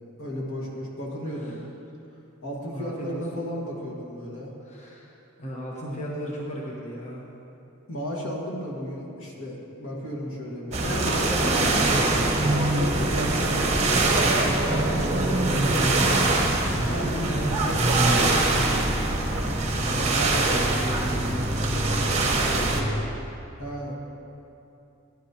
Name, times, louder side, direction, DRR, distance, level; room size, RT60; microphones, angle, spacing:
voice 1, 0.2-1.6 2.4-4.5 7.9-11.2 12.4-15.2 15.5-15.6 23.6-23.9, equal, 70° left, -2 dB, 1.8 m, -34 dB
voice 2, 2.7-3.2 4.7-5.1 5.4-7.3 10.8-11.9 14.7-16.2 16.8-18.8 20.0-23.1, equal, 35° left, -4 dB, 1.1 m, -34 dB
sound 1, 10.7-22.8, right 2 dB, 35° right, 1.1 m, -23 dB
14.5 x 10.5 x 2.9 m, 2.8 s
head